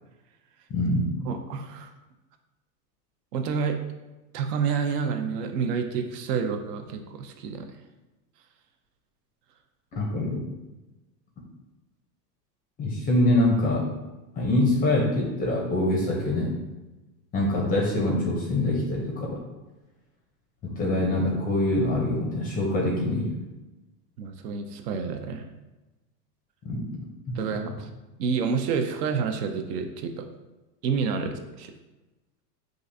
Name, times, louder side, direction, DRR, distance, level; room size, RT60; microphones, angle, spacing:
voice 1, 0.7-1.1 9.9-10.4 12.8-13.9 14.4-16.5 17.3-19.4 20.6-23.3 26.6-26.8 27.3-27.4, left 1 dB, 20° left, -2 dB, 0.4 m, -24 dB
voice 2, 1.3-1.9 3.3-3.8 4.3-7.7 24.2-25.5 27.3-27.9 28.2-30.3 30.8-31.7, right 6 dB, 70° right, 6 dB, 0.6 m, -29 dB
3.8 x 2.4 x 2.5 m, 1.1 s
hypercardioid pair, 115°, 49 cm